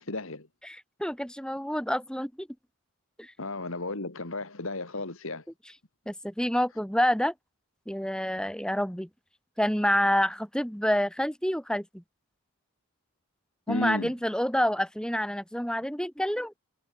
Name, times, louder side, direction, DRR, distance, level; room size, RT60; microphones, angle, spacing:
voice 1, 0.0-0.5 3.4-5.4 13.7-14.1, left 2 dB, 65° left, 2.0 m, -34 dB
voice 2, 0.6-2.5 3.2-3.3 6.1-7.3 7.9-9.1 9.6-12.0 13.7-16.5, equal, 5° left, 4.8 m, -28 dB
head